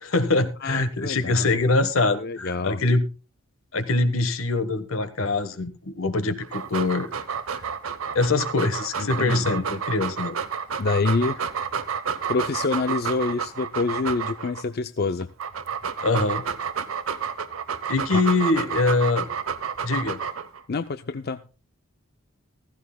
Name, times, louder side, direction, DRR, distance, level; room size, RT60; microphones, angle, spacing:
voice 1, 0.0-3.1 3.7-7.1 8.1-10.4 16.0-16.4 17.9-19.3 19.8-20.2, left 3 dB, 80° left, 11 dB, 1.4 m, -23 dB
voice 2, 0.6-1.6 2.1-2.8 9.0-9.6 10.8-11.4 12.3-15.3 18.1-18.2 20.7-21.4, left 3 dB, 50° left, 10 dB, 0.5 m, -27 dB
Dog, 6.4-14.6 15.2-20.6, right 7 dB, 85° right, 1.1 m, -30 dB
15.5 x 15.0 x 2.3 m, 0.32 s
head